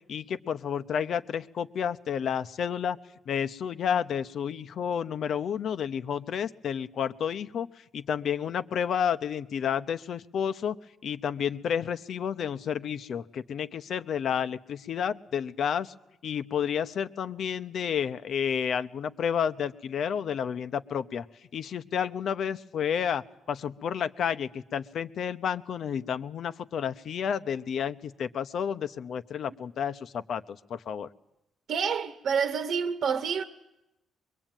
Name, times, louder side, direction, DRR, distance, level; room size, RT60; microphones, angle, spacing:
voice 1, 0.1-3.0 3.3-7.7 7.9-10.8 11.0-15.9 16.2-21.2 21.5-31.1, left 8 dB, 65° left, 0.9 m, -31 dB
voice 2, 31.7-33.4, right 6 dB, 65° right, 1.3 m, -28 dB
23.0 x 22.5 x 9.1 m
cardioid pair, 90°, 0 cm